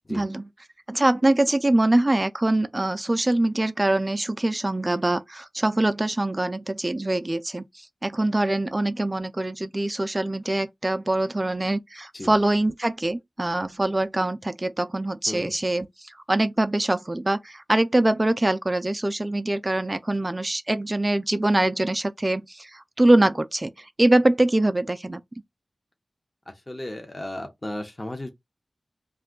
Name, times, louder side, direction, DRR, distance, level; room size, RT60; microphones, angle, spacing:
voice 1, 0.1-0.4 0.9-23.7 24.0-25.2, right 1 dB, 20° right, 0.3 m, -23 dB
voice 2, 26.7-28.3, left 1 dB, 25° left, 0.7 m, -34 dB
2.5 x 2.2 x 3.7 m
wide cardioid pair, 90°, 0 cm